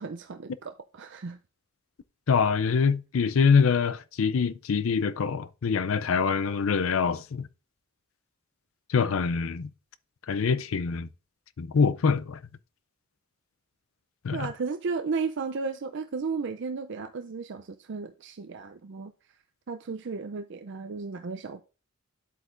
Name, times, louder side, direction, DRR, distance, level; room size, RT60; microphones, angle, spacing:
voice 1, 0.0-1.4 14.3-19.1 19.7-21.6, right 4 dB, 55° right, 0.5 m, -34 dB
voice 2, 2.3-7.4 8.9-9.7 10.3-11.1 11.6-12.4 14.2-14.5, left 5 dB, 70° left, 0.5 m, -24 dB
9.9 x 8.1 x 2.5 m
head